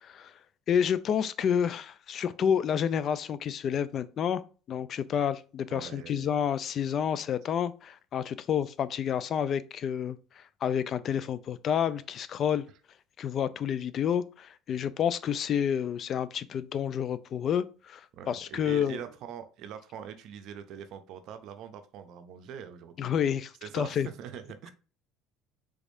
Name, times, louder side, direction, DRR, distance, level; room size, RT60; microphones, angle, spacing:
voice 1, 0.0-0.3 0.7-4.4 4.7-12.6 13.2-19.0 23.0-24.1, left 8 dB, 50° left, 0.3 m, -29 dB
voice 2, 5.7-6.3 18.1-23.2 23.6-24.7, right 8 dB, 65° right, 0.6 m, -43 dB
3.5 x 3.3 x 2.6 m
supercardioid pair, 90°, 0 cm